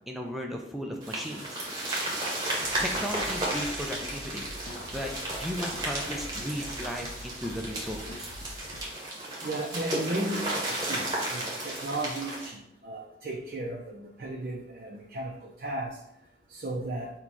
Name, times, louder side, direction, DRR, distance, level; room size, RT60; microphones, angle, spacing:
voice 1, 0.1-1.6 2.8-4.5 4.9-5.1 5.4-8.3, equal, ahead, 1 dB, 0.4 m, -36 dB
sound 1, 1.0-12.5, right 1 dB, 20° right, 1.0 m, -34 dB
sound 2, 2.6-8.8, left 1 dB, 65° left, 0.6 m, -44 dB
voice 2, 9.4-15.3 15.6-16.0 16.5-17.1, right 1 dB, 55° right, -2 dB, 0.5 m, -35 dB
4.1 x 2.3 x 4.6 m, 0.81 s
head